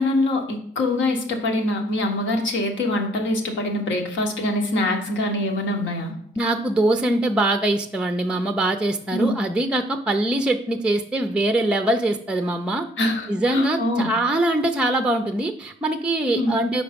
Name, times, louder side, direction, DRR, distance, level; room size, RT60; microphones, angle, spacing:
voice 1, 0.0-6.2 9.1-9.3 13.0-14.1 16.3-16.5, left 1 dB, 70° left, 4 dB, 1.3 m, -24 dB
voice 2, 6.4-12.9 13.3-16.8, right 1 dB, 5° right, 6 dB, 0.5 m, -22 dB
5.1 x 4.7 x 5.2 m, 0.65 s
cardioid pair, 90°, 20 cm